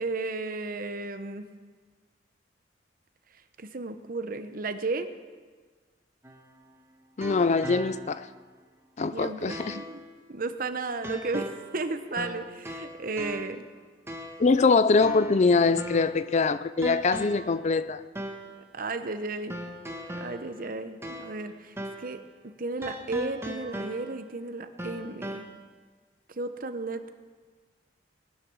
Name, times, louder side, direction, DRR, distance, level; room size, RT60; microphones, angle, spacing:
voice 1, 0.0-1.5 3.6-5.1 9.1-10.0 10.3-13.6 18.7-19.6 20.1-22.2 22.4-25.5 26.4-27.1, right 3 dB, 50° right, 9 dB, 1.0 m, -34 dB
sound 1, 6.2-8.3 8.7-8.8 9.5-10.0 11.0-11.8 12.2-13.7 14.1-14.5 15.0-16.3 16.8-17.6 18.1-18.6 19.5-21.5 21.8-22.2 22.8-24.3 24.8-25.4, equal, 15° right, 1.4 m, -39 dB
voice 2, 7.2-8.2 9.0-9.8 14.4-18.0, left 4 dB, 40° left, 14 dB, 0.4 m, -23 dB
19.5 x 10.0 x 6.3 m, 1.5 s
head